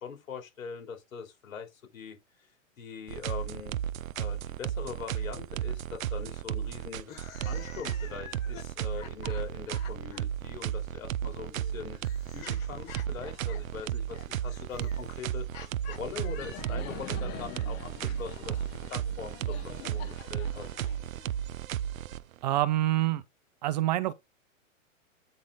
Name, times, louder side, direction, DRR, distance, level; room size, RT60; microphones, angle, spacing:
voice 1, 0.0-2.2 2.8-3.8 4.1-7.1 7.5-12.0 12.3-15.4 15.9-20.7, left 6 dB, 80° left, 3.8 m, -42 dB
sound 1, 3.1-22.5, right 10 dB, 85° right, 0.6 m, -34 dB
sound 2, 7.0-10.2 11.3-17.1, left 9 dB, 45° left, 4.8 m, -49 dB
Laughter, 16.0-21.8, left 10 dB, 25° left, 0.8 m, -46 dB
voice 2, 22.4-23.2 23.6-24.1, right 15 dB, 35° right, 0.5 m, -26 dB
8.7 x 3.9 x 4.1 m
hypercardioid pair, 145°, 40 cm